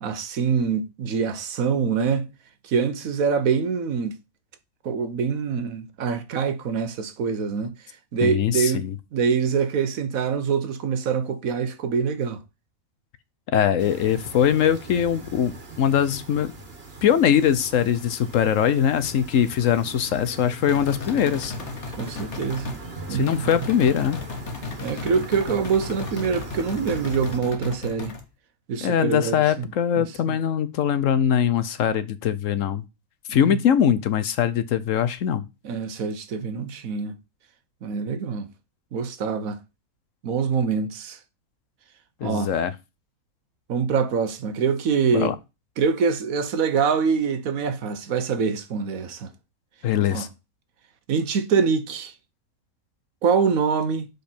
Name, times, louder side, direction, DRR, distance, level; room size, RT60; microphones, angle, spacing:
voice 1, 0.0-2.3 2.7-4.1 4.8-7.7 8.1-8.9 9.1-12.4 21.9-22.8 23.1-23.7 24.8-28.1 28.7-29.7 30.0-30.4 33.3-33.6 35.6-37.2 37.8-38.5 38.9-39.6 40.2-41.2 42.2-42.5 43.7-45.3 45.8-49.3 50.1-50.2 51.1-52.1 53.2-54.1, right 6 dB, 70° right, 1.3 m, -25 dB
voice 2, 8.2-9.0 13.5-16.5 17.0-21.5 23.1-24.2 28.8-32.8 33.3-35.5 42.2-42.7 45.1-45.3 49.8-50.3, left 9 dB, 70° left, 1.0 m, -22 dB
sound 1, 13.8-27.4, right 2 dB, 45° right, 1.7 m, -40 dB
sound 2, 20.7-22.8 23.3-28.2, left 4 dB, 55° left, 1.6 m, -35 dB
6.6 x 5.3 x 4.4 m
omnidirectional pair, 1.5 m